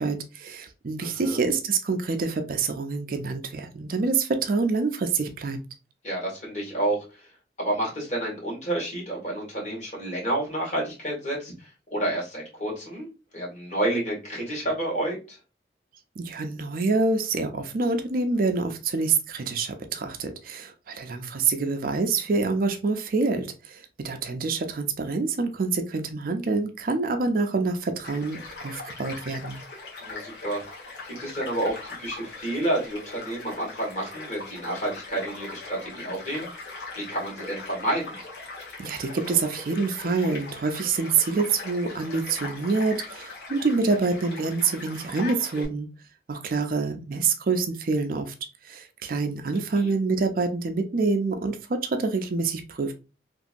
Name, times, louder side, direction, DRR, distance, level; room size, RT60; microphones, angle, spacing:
voice 1, 0.0-5.6 16.2-29.6 38.8-45.9 46.3-48.3 48.6-52.9, right 4 dB, 55° right, 6 dB, 0.4 m, -26 dB
voice 2, 1.0-1.5 6.0-7.3 7.6-15.4 30.0-36.5 37.0-38.2 49.5-49.9, right 1 dB, 45° left, -3 dB, 1.6 m, -30 dB
Child speech kid speaking / Stream / Car passing by, 28.0-45.7, left 3 dB, 80° left, 1.2 m, -40 dB
3.0 x 2.7 x 2.5 m, 0.30 s
head